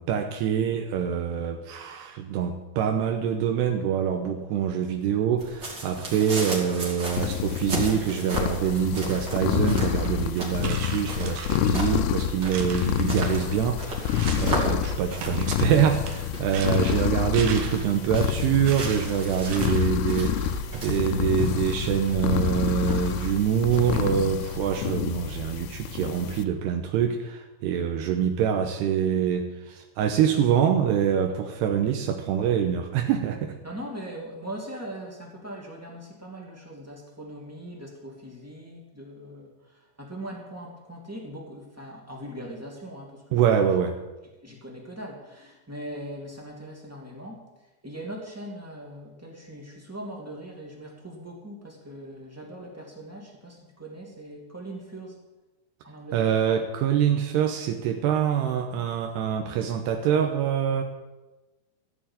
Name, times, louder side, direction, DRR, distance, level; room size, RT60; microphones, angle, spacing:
voice 1, 0.0-33.5 43.3-44.0 56.1-60.8, right 8 dB, 80° right, 4 dB, 2.8 m, -25 dB
sound 1, 5.4-24.5, right 1 dB, 30° right, 3.0 m, -37 dB
voice 2, 5.9-6.3 11.9-12.0 31.3-31.4 33.6-43.5 44.4-47.4 47.8-55.1 55.8-56.3, right 1 dB, 5° right, -2 dB, 1.3 m, -40 dB
sound 2, 7.2-26.4, left 9 dB, 80° left, 2.7 m, -28 dB
sound 3, 9.9-10.1 10.5-12.1 12.4-14.6 14.9-18.0 18.6-19.9, right 6 dB, 65° right, 2.2 m, -39 dB
14.5 x 7.1 x 8.8 m, 1.1 s
omnidirectional pair, 5.0 m